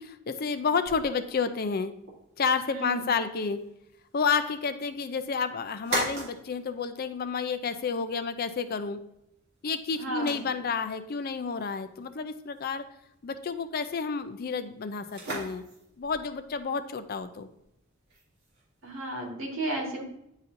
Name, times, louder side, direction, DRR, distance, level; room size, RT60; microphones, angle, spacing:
voice 1, 0.0-1.9 2.4-3.6 4.1-9.0 9.6-12.8 13.2-15.6 16.0-17.5, left 5 dB, 45° left, 10 dB, 0.4 m, -30 dB
sound 1, 0.8-19.3, right 2 dB, 55° right, 2.6 m, -43 dB
voice 2, 2.7-3.1 10.0-10.4 18.8-20.0, right 1 dB, 80° right, -1 dB, 1.9 m, -33 dB
9.9 x 4.1 x 2.6 m, 0.80 s
head